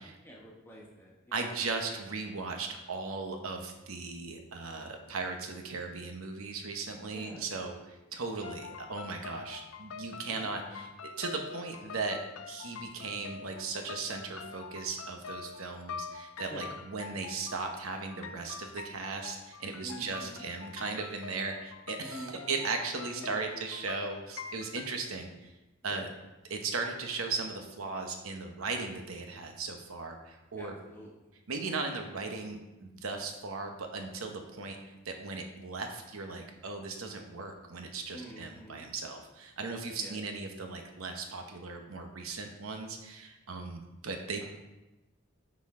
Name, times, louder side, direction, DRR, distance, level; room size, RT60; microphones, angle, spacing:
voice 1, 0.2-1.5 7.1-7.4 10.3-10.9 16.5-16.7 19.8-20.4 22.0-22.6 23.1-23.6 25.9-26.0 30.6-31.1 38.1-38.9 40.0-40.2 44.4-44.5, right 1 dB, 10° left, -4 dB, 1.3 m, -47 dB
voice 2, 1.3-10.9 11.2-12.2 12.5-25.5 25.8-26.1 26.5-30.7 31.5-34.8 35.0-44.5, right 4 dB, 90° right, 4 dB, 0.9 m, -37 dB
sound 1, 8.4-24.9, left 5 dB, 80° left, 0.4 m, -45 dB
9.7 x 4.2 x 3.7 m, 1.0 s
head